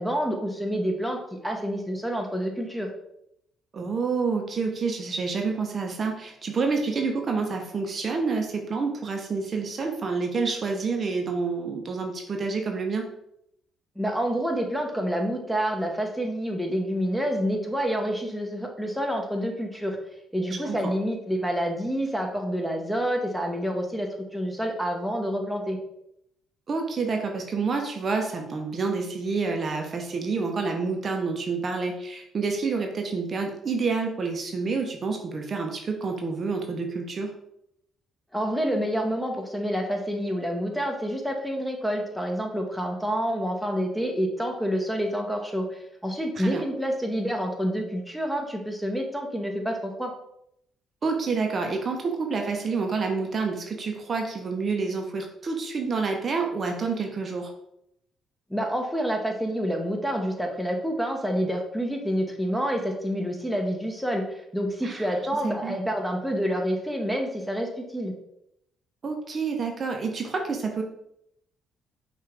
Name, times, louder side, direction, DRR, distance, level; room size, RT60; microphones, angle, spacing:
voice 1, 0.0-2.9 14.0-20.0 20.3-25.8 38.3-50.1 58.5-68.1, equal, ahead, 2 dB, 1.0 m, -28 dB
voice 2, 3.7-13.1 20.6-20.8 26.7-37.3 46.4-46.6 51.0-57.5 64.8-65.1 65.4-65.8 69.0-70.8, right 4 dB, 50° right, 3 dB, 0.7 m, -28 dB
5.6 x 2.5 x 3.2 m, 0.78 s
hypercardioid pair, 50°, 0 cm